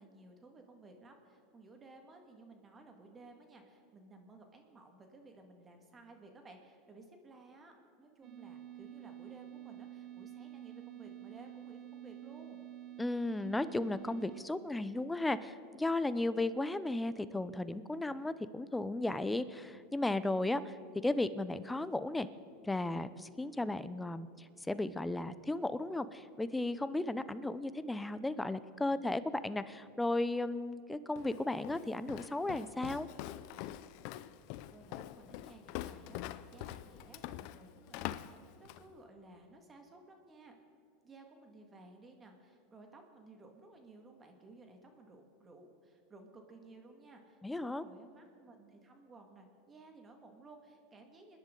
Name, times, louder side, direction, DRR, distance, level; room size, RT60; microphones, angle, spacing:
voice 1, 0.0-12.6 34.7-40.5 41.0-51.4, right 2 dB, 25° right, 4 dB, 1.9 m, -57 dB
sound 1, 8.2-14.4, right 12 dB, 45° right, 0.8 m, -49 dB
voice 2, 13.0-20.8 21.0-22.3 22.6-33.1 47.4-47.8, left 2 dB, 10° left, 14 dB, 0.6 m, -35 dB
Walk footsteps, 31.2-38.9, left 13 dB, 60° left, 0.5 m, -44 dB
25.0 x 10.5 x 3.9 m, 2.5 s
supercardioid pair, 110°, 0 cm